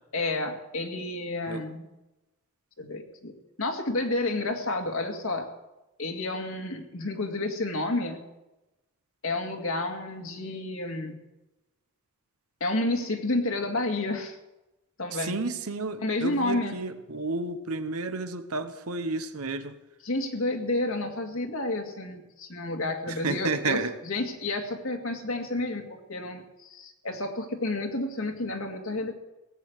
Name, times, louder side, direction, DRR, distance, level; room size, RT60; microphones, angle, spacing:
voice 1, 0.1-1.8 2.8-5.5 6.0-8.2 9.2-11.2 12.6-14.4 15.0-15.4 16.0-16.8 20.0-29.1, left 2 dB, 65° left, 3 dB, 2.2 m, -30 dB
voice 2, 15.1-19.7 23.1-23.9, right 3 dB, 80° right, 9 dB, 1.2 m, -31 dB
17.5 x 8.8 x 8.1 m, 1.0 s
head